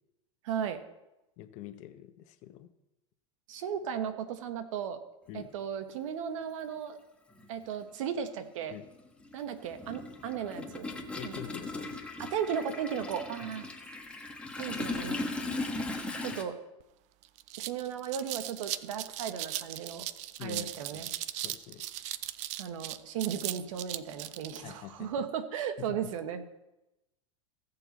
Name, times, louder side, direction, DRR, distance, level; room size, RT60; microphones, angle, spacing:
voice 1, 0.4-0.8 3.5-5.0 5.3-7.0 7.5-8.8 9.3-11.6 12.2-13.7 14.6-15.2 16.2-16.6 17.6-20.1 20.4-21.1 22.6-26.4, right 8 dB, 70° right, 9 dB, 1.2 m, -36 dB
voice 2, 1.4-2.7 5.3-5.5 8.7-8.8 11.0-12.0 13.4-13.5 20.4-21.1 21.4-21.8 24.6-25.1, left 13 dB, 45° left, 9 dB, 1.0 m, -45 dB
Toilet flush, 5.9-6.0 7.3-7.5 7.8-16.4, left 2 dB, 5° left, 1.3 m, -38 dB
sound 1, 16.8-16.9 17.2-24.6, right 14 dB, 45° right, 0.5 m, -38 dB
16.0 x 6.9 x 4.1 m, 0.95 s
hypercardioid pair, 120°, 17 cm